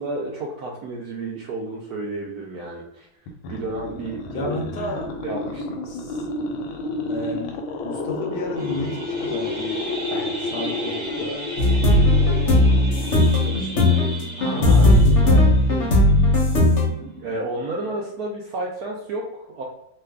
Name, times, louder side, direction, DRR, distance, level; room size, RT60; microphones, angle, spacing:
voice 1, 0.0-3.1 3.5-4.6 5.2-5.8 10.1-10.3 14.4-15.0 15.2-15.5 17.2-19.6, right 2 dB, 75° right, -2 dB, 0.9 m, -31 dB
sound 1, 3.3-14.4, left 2 dB, 90° left, 1.4 m, -31 dB
voice 2, 4.3-5.1 5.9-6.3 7.1-9.9 10.2-11.5 12.2-12.7 13.3-14.1 14.5-15.3 16.0-16.4, left 2 dB, 70° left, 1 dB, 1.1 m, -32 dB
sound 2, 8.5-18.2, right 1 dB, 40° right, 0.9 m, -37 dB
sound 3, 11.6-16.9, left 1 dB, 50° left, 0.9 m, -17 dB
3.1 x 2.2 x 3.4 m, 0.84 s
omnidirectional pair, 2.1 m